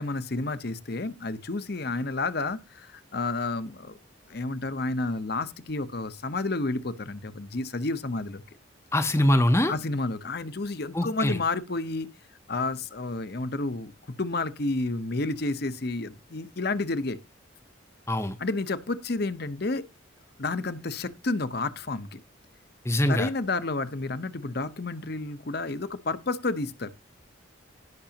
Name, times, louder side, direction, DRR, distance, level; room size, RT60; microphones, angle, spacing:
voice 1, 0.0-4.0 4.3-8.4 9.7-12.1 12.5-13.9 14.2-17.2 18.4-19.9 20.4-22.2 23.1-26.9, left 3 dB, 50° left, 0.8 m, -30 dB
voice 2, 8.9-9.7 10.9-11.4 18.1-18.4 22.8-23.3, left 1 dB, 15° left, 0.7 m, -23 dB
17.5 x 6.1 x 2.9 m
head